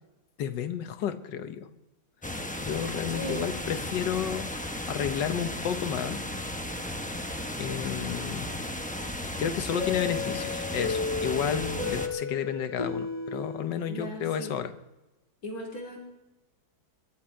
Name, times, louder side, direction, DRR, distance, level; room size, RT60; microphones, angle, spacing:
voice 1, 0.4-1.7 2.6-4.5 4.9-6.2 7.6-8.5 9.4-14.7, left 8 dB, 70° left, 10 dB, 1.6 m, -31 dB
sound 1, 2.2-12.1, left 1 dB, 10° left, 0.4 m, -35 dB
voice 2, 3.0-3.5 13.9-14.5 15.4-16.0, equal, 50° left, -1 dB, 3.6 m, -37 dB
sound 2, 9.8-14.5, left 4 dB, 15° right, 6.7 m, -34 dB
22.0 x 10.5 x 4.5 m, 1.0 s
omnidirectional pair, 2.1 m